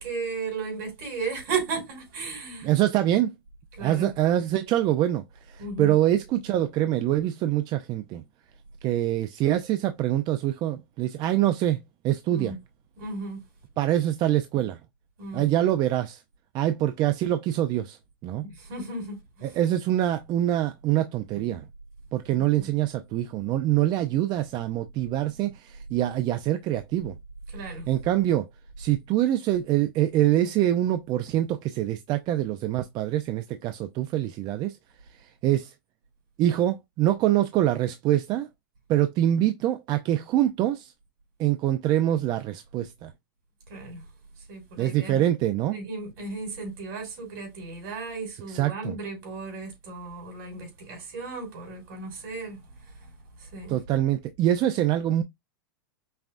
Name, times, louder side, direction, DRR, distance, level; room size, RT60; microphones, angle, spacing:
voice 1, 0.0-2.7 3.7-4.1 5.6-5.9 12.3-12.6 13.0-13.4 15.2-15.5 18.4-19.6 27.5-27.9 43.7-44.1 44.4-45.2 45.7-53.8, right 4 dB, 65° right, 2.9 m, -35 dB
voice 2, 2.6-3.3 3.8-8.2 8.8-12.5 13.8-14.8 15.3-16.2 16.5-18.0 18.2-18.4 19.4-21.6 22.1-27.2 27.9-28.5 28.8-34.8 35.4-35.7 36.4-38.5 38.9-40.9 41.4-43.1 44.8-45.8 48.5-49.0 53.7-55.2, right 13 dB, 35° right, 0.4 m, -25 dB
5.4 x 2.2 x 2.5 m
hypercardioid pair, 125°, 12 cm